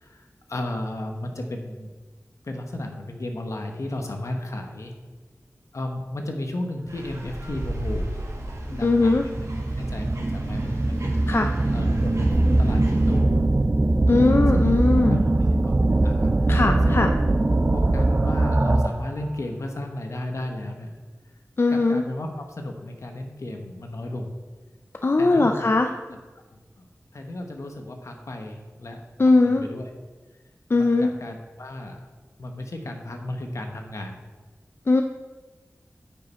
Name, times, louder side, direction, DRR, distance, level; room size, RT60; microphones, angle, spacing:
voice 1, 0.0-1.9 2.4-4.9 5.7-8.1 8.7-9.5 9.8-13.4 14.2-14.7 15.1-16.6 16.8-17.1 17.7-20.9 21.7-24.3 25.2-25.7 26.1-26.2 26.8-26.9 27.1-29.9 30.7-32.1 32.4-34.2, left 1 dB, 70° left, 3 dB, 1.1 m, -34 dB
sound 1, 6.9-13.2, right 1 dB, 75° right, 1.6 m, -37 dB
sound 2, 7.7-7.8 8.5-19.1, right 2 dB, 30° right, 0.4 m, -21 dB
voice 2, 8.8-9.2 11.3-11.5 14.1-15.2 16.5-17.1 21.6-22.0 25.0-25.9 29.2-29.6 30.7-31.1 34.9-35.0, left 3 dB, 50° left, 5 dB, 0.4 m, -19 dB
8.9 x 5.5 x 4.2 m, 1.3 s
wide cardioid pair, 65°, 5 cm